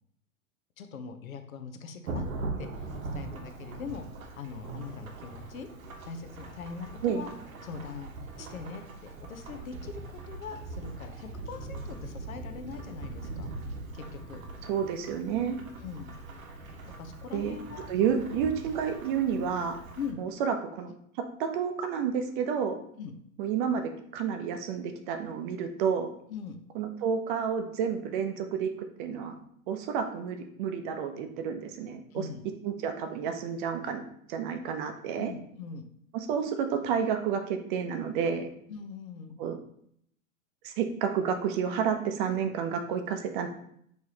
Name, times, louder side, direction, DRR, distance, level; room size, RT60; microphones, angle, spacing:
voice 1, 0.8-2.2 2.6-4.0 4.3-5.7 6.0-7.3 7.6-8.1 8.4-13.5 13.9-14.4 15.8-16.1 16.8-17.9 20.0-20.2 23.0-23.2 26.3-26.6 32.1-32.4 35.2-35.9 38.7-39.4, left 6 dB, 75° left, 7 dB, 0.8 m, -41 dB
Thunderstorm / Rain, 2.1-20.1, right 3 dB, 75° right, 0.9 m, -41 dB
voice 2, 14.7-15.6 17.3-17.6 17.9-19.8 20.2-20.9 21.4-22.8 23.4-26.1 26.7-28.7 29.0-29.3 29.7-32.2 32.6-34.0 34.3-35.3 36.1-38.5 39.4-39.6 40.6-43.5, right 7 dB, 40° right, 6 dB, 0.6 m, -30 dB
4.6 x 3.2 x 2.8 m, 0.69 s
hypercardioid pair, 105°, 42 cm